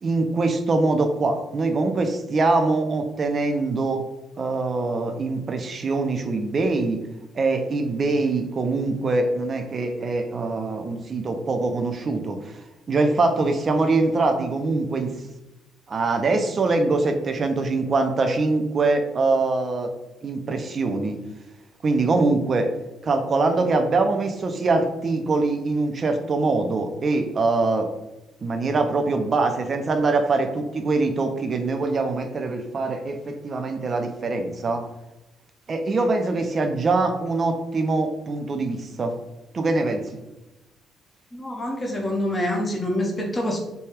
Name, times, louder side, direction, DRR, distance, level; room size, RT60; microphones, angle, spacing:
voice 1, 0.0-4.0 4.4-7.0 7.3-12.6 12.9-15.2 15.9-19.9 20.2-21.2 21.8-22.7 23.0-27.9 28.4-34.8 35.7-39.2 39.5-40.2, right 3 dB, 35° right, 5 dB, 0.5 m, -23 dB
voice 2, 41.3-43.6, left 1 dB, 20° left, -1 dB, 0.7 m, -26 dB
3.3 x 2.2 x 4.3 m, 0.98 s
cardioid pair, 120°, 0 cm